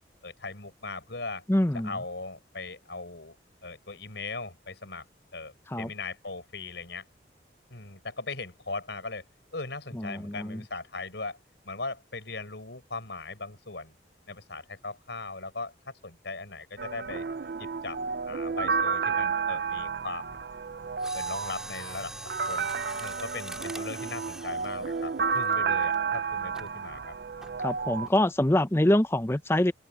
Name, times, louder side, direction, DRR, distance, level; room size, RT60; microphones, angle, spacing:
voice 1, 0.2-1.4 1.8-3.3 3.6-5.1 5.3-7.0 7.7-9.2 9.5-11.4 11.6-13.9 14.3-17.2 17.6-18.0 18.3-20.4 21.1-22.7 23.0-27.1 28.0-28.1, left 3 dB, 75° left, 4.9 m, -39 dB
voice 2, 1.5-2.0 5.7-5.9 9.9-10.6 27.6-29.7, left 1 dB, 15° left, 0.6 m, -25 dB
sound 1, 16.8-28.1, right 5 dB, 55° right, 0.5 m, -31 dB
Mechanisms, 21.0-26.0 26.5-26.8 27.4-27.7 28.1-28.2, right 1 dB, 5° right, 4.7 m, -43 dB
head